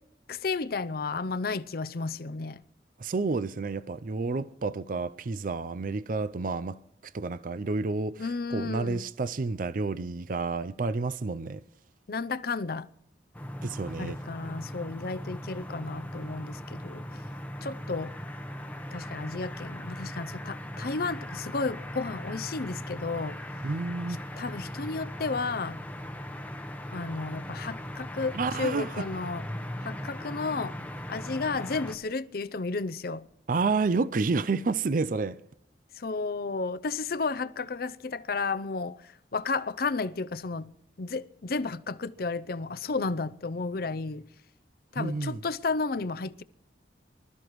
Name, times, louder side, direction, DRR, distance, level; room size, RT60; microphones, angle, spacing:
voice 1, 0.3-2.6 8.2-9.0 12.1-12.9 14.0-17.1 17.6-18.1 18.9-23.4 24.4-25.8 26.9-29.4 29.8-30.7 31.1-33.3 36.0-40.7 41.0-44.3 44.9-46.4, left 4 dB, 55° left, 0.6 m, -32 dB
voice 2, 3.0-11.6 13.6-14.2 23.6-24.2 28.3-29.1 33.5-35.4 45.0-45.4, right 3 dB, 50° right, 0.5 m, -30 dB
sound 1, 13.3-32.0, equal, 10° left, 0.9 m, -39 dB
25.0 x 13.5 x 3.1 m
head